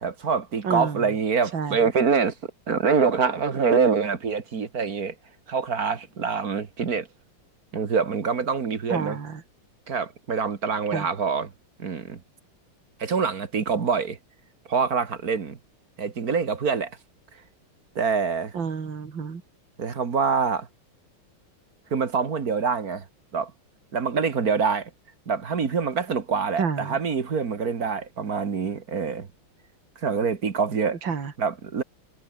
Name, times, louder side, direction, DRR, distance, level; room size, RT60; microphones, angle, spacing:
voice 1, 0.0-2.3 2.7-5.1 5.5-7.1 7.7-9.2 9.9-11.5 11.8-12.2 13.0-14.2 14.7-15.6 16.0-16.9 18.0-18.5 19.8-20.7 21.9-23.0 23.3-23.5 23.9-24.9 25.3-29.3 30.0-31.0 31.4-31.8, right 5 dB, 45° right, 2.1 m, -25 dB
voice 2, 0.6-1.0 1.5-1.8 8.9-9.4 10.9-11.1 18.5-19.4 26.6-27.0 31.0-31.3, right 6 dB, 60° right, 3.4 m, -29 dB
omnidirectional pair, 2.3 m